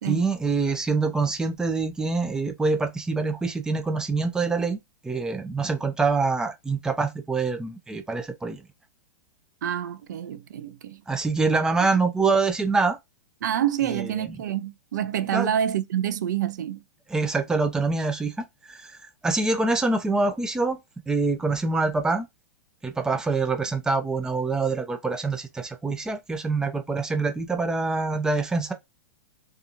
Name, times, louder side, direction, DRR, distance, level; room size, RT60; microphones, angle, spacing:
voice 1, 0.1-4.8 5.0-8.6 11.1-13.0 13.9-14.4 15.3-15.5 17.1-19.0 19.2-20.8 21.1-22.3 22.8-28.7, right 3 dB, 5° right, 0.4 m, -25 dB
voice 2, 9.6-11.0 13.4-16.8, right 10 dB, 75° right, 0.4 m, -27 dB
2.8 x 2.3 x 2.5 m
hypercardioid pair, 125°, 10 cm